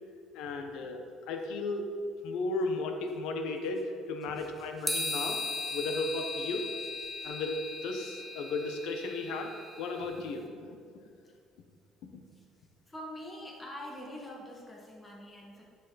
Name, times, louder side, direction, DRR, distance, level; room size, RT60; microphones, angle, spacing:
voice 1, 0.3-1.0 1.3-1.9 2.2-5.4 5.7-6.6 7.2-10.8 12.0-12.3, left 3 dB, 80° left, 4 dB, 1.1 m, -35 dB
voice 2, 4.3-4.9 6.8-7.3 12.3-12.5 12.9-15.6, left 1 dB, 15° left, -2 dB, 1.7 m, -46 dB
sound 1, 4.9-10.2, left 2 dB, 10° right, 0.8 m, -37 dB
10.5 x 7.1 x 4.1 m, 2.2 s
cardioid pair, 140°, 0 cm